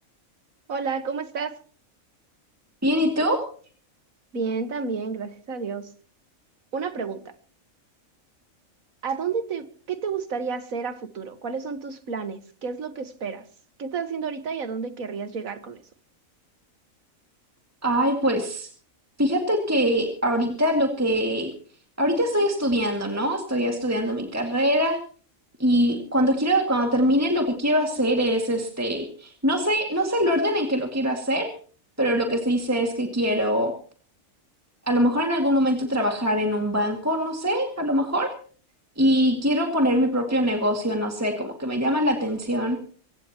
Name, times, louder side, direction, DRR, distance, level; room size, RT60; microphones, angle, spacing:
voice 1, 0.7-1.6 4.3-5.9 6.7-7.3 9.0-13.5 13.8-15.8, right 5 dB, 80° right, 1.9 m, -31 dB
voice 2, 2.8-3.4 17.8-18.7 19.2-21.5 22.0-25.0 25.6-31.5 32.0-33.7 34.9-38.3 39.0-42.8, equal, 10° right, 2.2 m, -23 dB
24.0 x 17.0 x 3.0 m
omnidirectional pair, 1.4 m